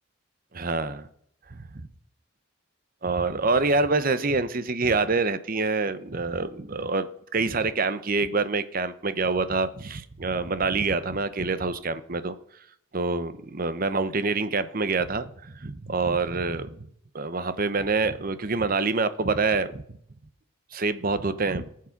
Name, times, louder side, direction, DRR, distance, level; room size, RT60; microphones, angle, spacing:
voice 1, 0.5-1.1 1.5-1.9 3.0-7.1 7.3-12.3 12.9-16.9 17.1-19.8 20.7-21.7, right 3 dB, 40° right, 13 dB, 0.8 m, -26 dB
18.0 x 7.6 x 5.9 m, 0.70 s
head